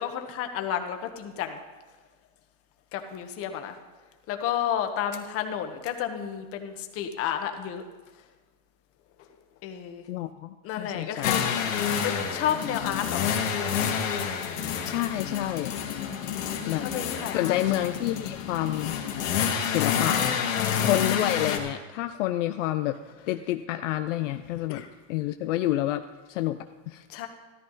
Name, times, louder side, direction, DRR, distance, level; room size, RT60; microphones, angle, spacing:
voice 1, 0.0-1.6 2.9-3.8 4.3-7.8 9.2-9.3 9.6-10.0 10.6-13.4 16.2-17.5 20.5-20.9 24.7-24.9 27.1-27.3, left 9 dB, 35° left, 6 dB, 1.4 m, -32 dB
voice 2, 10.1-11.3 14.8-15.7 16.7-16.9 17.3-19.0 19.7-20.2 20.8-23.0 23.3-24.8 25.1-26.0 26.3-26.6 26.9-27.0, left 14 dB, 70° left, 8 dB, 0.7 m, -28 dB
sound 1, 11.2-21.6, left 7 dB, 85° left, 2.1 m, -28 dB
14.0 x 13.0 x 4.0 m, 1.3 s
supercardioid pair, 140°, 38 cm